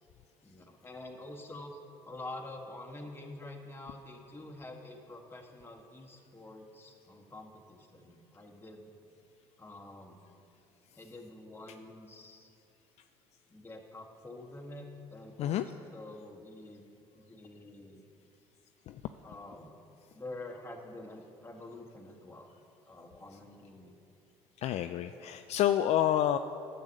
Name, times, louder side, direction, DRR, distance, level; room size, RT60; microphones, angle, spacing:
voice 1, 0.4-1.8 2.1-8.9 9.6-10.2 11.0-12.5 13.5-18.0 19.2-19.8 20.1-22.5 22.9-24.0, left 2 dB, 20° left, 2 dB, 1.7 m, -47 dB
voice 2, 24.6-26.4, left 11 dB, 55° left, 9 dB, 0.4 m, -28 dB
10.5 x 6.8 x 7.7 m, 2.7 s
hypercardioid pair, 65°, 13 cm